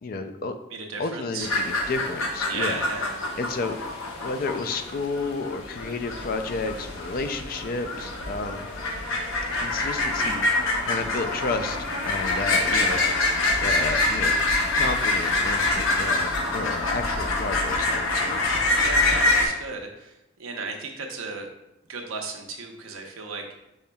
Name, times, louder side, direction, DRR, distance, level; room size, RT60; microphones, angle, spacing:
voice 1, 0.0-0.6 1.0-2.8 3.4-3.8 4.2-8.7 9.5-11.8 12.0-13.0 13.6-14.4 14.7-18.4, left 3 dB, 45° left, 8 dB, 0.3 m, -31 dB
voice 2, 0.7-1.5 2.5-3.2 12.7-13.1 18.8-21.5 21.9-23.6, right 3 dB, 90° right, 2 dB, 0.7 m, -35 dB
sound 1, 1.4-19.5, left 2 dB, 80° left, 0.7 m, -25 dB
5.5 x 4.1 x 2.2 m, 0.87 s
head